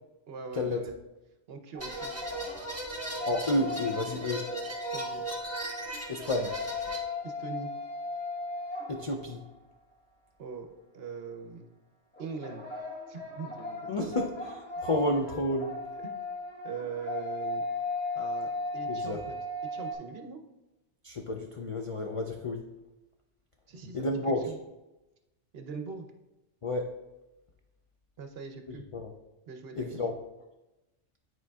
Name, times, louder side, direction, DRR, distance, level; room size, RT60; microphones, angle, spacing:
voice 1, 0.3-0.9 1.5-2.1 4.9-5.2 7.2-7.7 10.4-10.7 10.9-11.7 12.2-12.7 13.1-14.2 15.9-16.2 16.6-17.6 18.1-19.4 19.7-20.4 23.7-24.1 24.5-24.6 25.5-26.1 28.2-28.8 29.5-30.1, right 5 dB, 60° right, 6 dB, 0.9 m, -41 dB
sound 1, 1.7-9.6 12.1-20.0, left 2 dB, 10° left, 1.1 m, -37 dB
sound 2, 1.8-7.0, right 1 dB, 10° right, 1.2 m, -38 dB
voice 2, 3.3-4.5 6.1-6.6 8.9-9.4 13.9-14.6 14.8-15.8 18.9-19.2 21.0-22.7 23.9-24.5 26.6-26.9 28.7-29.1 29.8-30.1, left 1 dB, 60° left, 2 dB, 0.3 m, -31 dB
9.8 x 4.5 x 2.3 m, 1.0 s
omnidirectional pair, 1.2 m